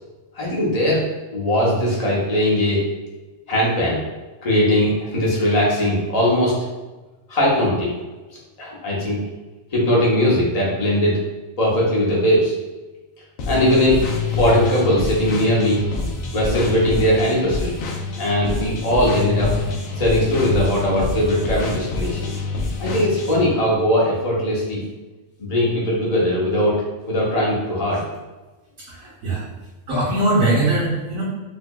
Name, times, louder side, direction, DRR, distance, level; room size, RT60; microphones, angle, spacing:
voice 1, 0.3-1.0 1.3-2.8 3.5-4.0 4.4-6.5 7.3-7.9 8.6-9.2 9.7-11.2 11.6-12.5 13.5-14.0 14.3-15.8 16.3-17.8 18.2-19.5 20.0-22.4 22.8-24.8 25.4-26.7 27.1-28.0, equal, 35° left, -5 dB, 0.9 m, -19 dB
sound 1, 13.4-23.5, left 4 dB, 85° left, 1.0 m, -26 dB
voice 2, 28.9-29.4 29.9-31.2, right 1 dB, 85° right, -12 dB, 1.6 m, -21 dB
4.7 x 2.5 x 2.2 m, 1.2 s
omnidirectional pair, 1.4 m